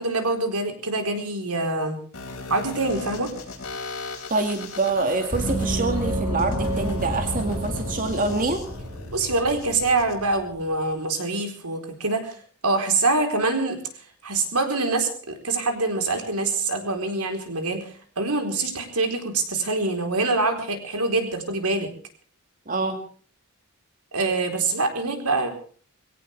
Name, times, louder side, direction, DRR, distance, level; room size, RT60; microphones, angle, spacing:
voice 1, 0.0-2.0 2.5-3.3 9.1-12.4 12.6-13.8 14.2-17.9 18.2-21.9 24.1-25.5, right 3 dB, 85° right, 5 dB, 4.2 m, -25 dB
sound 1, 2.1-10.1, left 2 dB, 70° left, 5.7 m, -37 dB
voice 2, 4.3-8.6 22.7-23.0, right 3 dB, 40° right, 5 dB, 2.2 m, -25 dB
Gong, 5.3-10.6, right 1 dB, 10° right, 6.5 m, -30 dB
22.5 x 17.5 x 3.5 m, 0.44 s
head